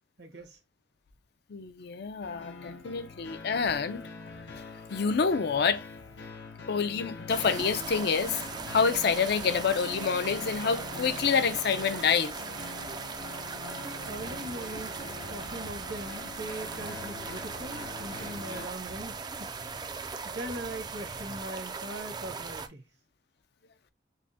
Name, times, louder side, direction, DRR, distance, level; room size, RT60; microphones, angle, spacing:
voice 1, 0.2-0.6 13.7-15.0 15.3-19.9 20.2-22.8, right 1 dB, 70° right, 1.1 m, -41 dB
voice 2, 1.5-4.0 4.5-4.6 4.9-5.8 6.7-8.4 8.7-12.3, left 6 dB, 60° left, 0.5 m, -27 dB
sound 1, 2.2-18.7, left 4 dB, 80° left, 0.8 m, -44 dB
sound 2, 7.3-22.7, right 5 dB, 25° right, 0.3 m, -39 dB
5.5 x 2.1 x 2.7 m
head